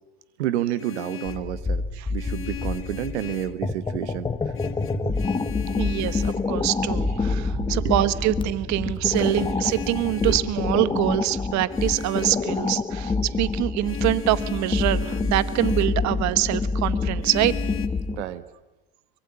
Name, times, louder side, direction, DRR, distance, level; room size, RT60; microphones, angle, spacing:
voice 1, 0.4-1.8 2.1-4.3 5.5-5.7 7.5-7.9 10.3-10.5 10.8-10.9 18.1-18.4, right 13 dB, 85° right, 14 dB, 1.3 m, -30 dB
Vehicle horn car horn honking, 0.6-1.5 2.2-3.6 4.5-6.5 9.1-10.5 11.7-12.4 13.8-16.0 17.2-17.9, left 10 dB, 40° left, 2.0 m, -38 dB
sound 1, 1.3-18.2, left 4 dB, 15° left, 1.4 m, -27 dB
voice 2, 5.8-17.6, right 15 dB, 55° right, 15 dB, 1.3 m, -25 dB
sound 2, 6.8-12.6, right 4 dB, 25° right, 1.7 m, -38 dB
23.5 x 22.5 x 9.9 m, 1.1 s
hypercardioid pair, 90°, 33 cm